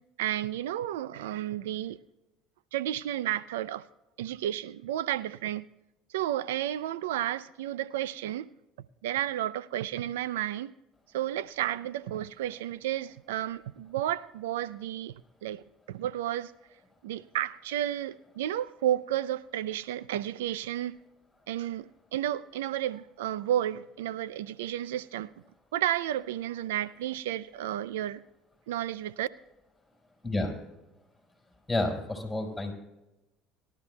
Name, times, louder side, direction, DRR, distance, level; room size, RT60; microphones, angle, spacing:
voice 1, 0.2-2.0 2.7-3.8 4.2-5.7 6.1-8.5 9.0-10.7 11.1-15.1 15.4-16.5 17.0-21.0 21.5-25.3 25.7-28.2 28.7-29.3, right 12 dB, 90° right, 0.4 m, -32 dB
voice 2, 31.7-32.7, left 2 dB, 10° left, 5.1 m, -30 dB
23.0 x 12.5 x 2.3 m
supercardioid pair, 85°, 0 cm